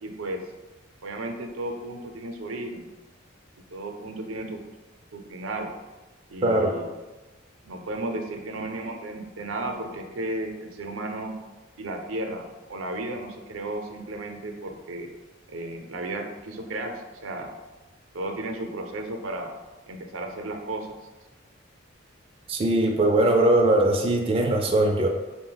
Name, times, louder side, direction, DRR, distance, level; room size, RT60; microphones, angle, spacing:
voice 1, 0.0-0.4 1.0-2.9 3.7-4.6 5.1-5.7 6.3-6.9 7.7-11.4 11.8-15.1 15.5-17.5 18.1-19.5 19.9-21.0, right 2 dB, 90° right, 4 dB, 0.5 m, -34 dB
voice 2, 22.5-25.1, right 1 dB, 30° right, 1 dB, 0.4 m, -20 dB
5.1 x 2.1 x 3.8 m, 1.2 s
head